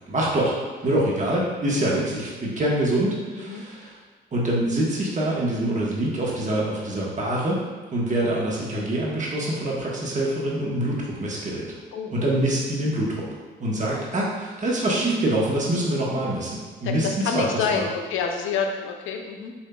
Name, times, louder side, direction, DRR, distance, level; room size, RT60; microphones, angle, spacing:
voice 1, 0.1-0.5 0.8-4.0 4.3-7.6 7.9-11.7 12.1-13.3 13.6-17.1 17.3-17.8, right 1 dB, 40° right, -4 dB, 1.2 m, -25 dB
voice 2, 16.8-19.5, left 6 dB, 80° left, 3 dB, 0.5 m, -28 dB
6.4 x 2.8 x 2.3 m, 1.4 s
cardioid pair, 90°, 20 cm